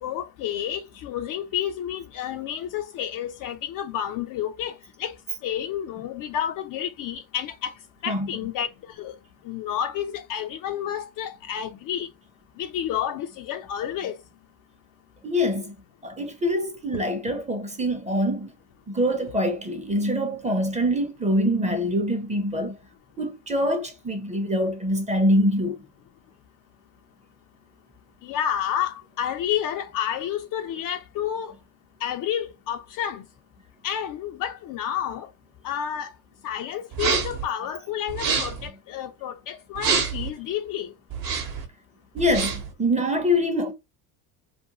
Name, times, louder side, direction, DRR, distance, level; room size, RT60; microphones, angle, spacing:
voice 1, 0.0-5.2 5.4-7.7 8.0-8.7 9.0-9.2 9.4-12.1 12.6-14.2 28.2-31.5 32.0-33.2 33.8-35.3 35.6-36.1 36.4-40.9, left 10 dB, 45° left, 0.5 m, -30 dB
voice 2, 15.2-15.7 16.0-18.5 18.9-22.7 23.2-25.8 42.1-43.7, equal, 15° right, 0.7 m, -24 dB
sound 1, 36.9-37.4 38.1-38.7 39.7-40.3 41.1-41.6 42.2-42.7, right 5 dB, 50° right, 1.0 m, -26 dB
2.5 x 2.2 x 2.9 m
hypercardioid pair, 85°, 45 cm